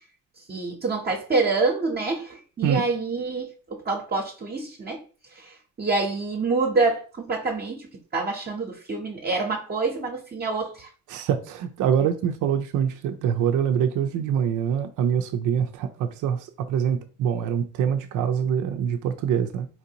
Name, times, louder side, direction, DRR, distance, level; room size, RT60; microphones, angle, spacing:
voice 1, 0.5-5.0 5.4-7.9 8.1-10.9, right 3 dB, 35° right, 0.8 m, -26 dB
voice 2, 11.1-19.7, right 8 dB, 85° right, 0.5 m, -25 dB
4.5 x 2.6 x 2.8 m
cardioid pair, 90°, 30 cm